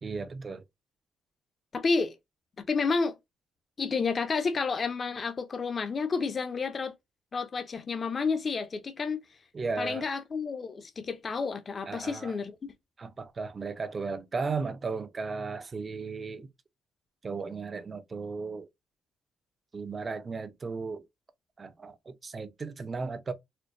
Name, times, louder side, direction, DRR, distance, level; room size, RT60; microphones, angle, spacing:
voice 1, 0.0-0.6 9.5-10.1 11.9-12.4 13.0-16.5 17.2-18.7 19.7-21.1 21.6-23.3, right 4 dB, 35° right, 0.6 m, -35 dB
voice 2, 1.7-2.2 2.7-3.2 3.8-6.9 7.3-9.2 9.8-12.7, left 4 dB, 40° left, 0.6 m, -30 dB
4.4 x 2.2 x 2.6 m
cardioid pair, 90°, 0 cm